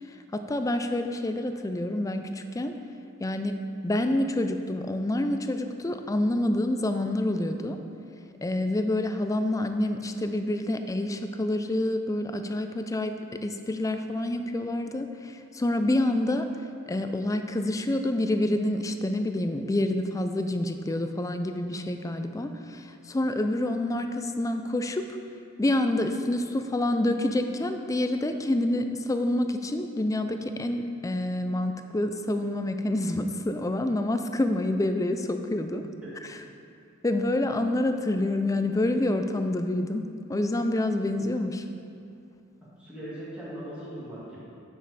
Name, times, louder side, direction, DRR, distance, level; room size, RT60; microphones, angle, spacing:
voice 1, 0.1-2.7 3.2-3.6 3.8-7.8 8.4-16.5 16.9-25.2 25.6-35.9 36.3-36.4 37.0-41.6, left 1 dB, 15° left, 7 dB, 0.4 m, -27 dB
voice 2, 42.7-44.4, right 1 dB, 5° right, -11 dB, 2.2 m, -39 dB
9.2 x 6.5 x 4.1 m, 2.5 s
head